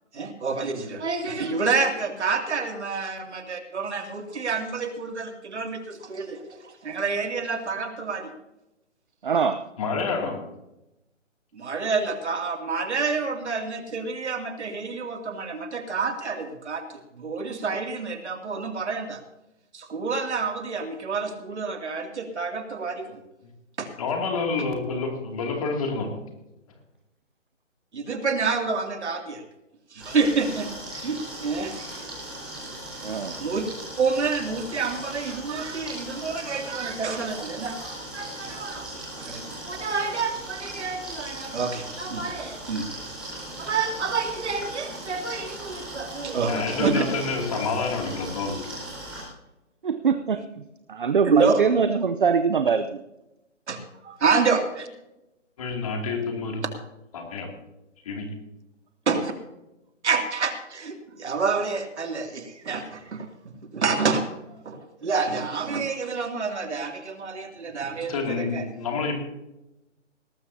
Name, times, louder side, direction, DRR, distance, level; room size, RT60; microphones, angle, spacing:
voice 1, 0.1-8.3 11.5-19.2 19.7-23.2 23.8-23.9 27.9-29.4 29.9-31.9 33.4-33.7 34.0-42.9 43.6-47.0 51.2-51.6 53.7-54.9 59.1-59.3 60.0-63.3 63.6-64.3 64.6-68.7, right 4 dB, 65° right, 5 dB, 2.7 m, -28 dB
voice 2, 9.2-9.6 33.0-33.3 49.8-50.4 50.9-53.0, right 6 dB, 45° right, 10 dB, 0.7 m, -23 dB
voice 3, 9.8-10.4 24.0-26.2 46.5-48.7 55.6-56.7 57.1-57.5 58.0-58.3 68.1-69.2, left 4 dB, 30° left, 2 dB, 2.6 m, -28 dB
sound 1, 30.0-49.2, right 1 dB, ahead, 4.1 m, -38 dB
19.0 x 13.5 x 2.8 m, 0.92 s
hypercardioid pair, 170°, 37 cm